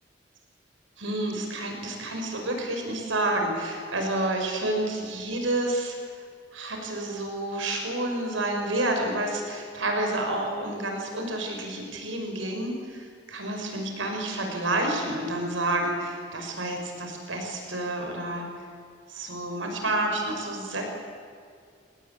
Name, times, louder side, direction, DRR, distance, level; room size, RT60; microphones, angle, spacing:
voice 1, 1.0-6.0 6.5-18.6 19.1-20.9, right 1 dB, 85° right, 2 dB, 6.0 m, -29 dB
29.0 x 20.0 x 8.6 m, 2.3 s
head